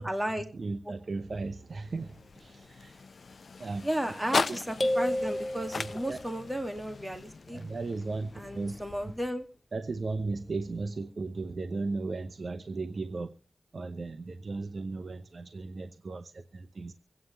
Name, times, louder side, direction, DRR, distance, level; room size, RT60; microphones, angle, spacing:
voice 1, 0.0-0.5 3.8-7.6 8.4-9.4, right 1 dB, 15° right, 2.2 m, -33 dB
voice 2, 0.5-3.0 3.6-3.8 4.5-4.6 5.8-6.2 7.5-8.7 9.7-13.3 13.7-16.9, right 3 dB, 75° right, 0.8 m, -36 dB
sound 1, 1.3-9.6, left 4 dB, 80° left, 0.6 m, -39 dB
sound 2, 4.8-6.3, left 1 dB, 45° left, 1.5 m, -30 dB
24.5 x 9.4 x 3.2 m
cardioid pair, 45°, 0 cm